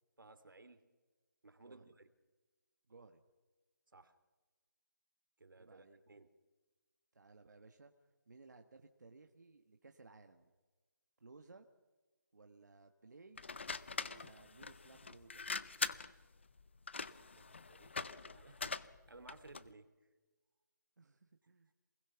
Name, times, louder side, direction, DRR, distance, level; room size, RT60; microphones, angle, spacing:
voice 1, 0.2-0.9 1.4-2.1 3.9-4.2 5.4-6.3 17.2-19.9, right 3 dB, 80° right, 10 dB, 2.6 m, -59 dB
voice 2, 2.9-3.2 5.5-6.0 7.1-7.9 8.3-10.5 11.2-11.7 12.3-13.5 14.0-15.5 21.0-21.7, right 3 dB, 60° right, 5 dB, 1.6 m, -60 dB
sound 1, 13.4-19.7, left 4 dB, 35° left, 0.6 m, -43 dB
27.0 x 20.5 x 5.9 m, 1.3 s
figure-of-eight pair, 175°, 11 cm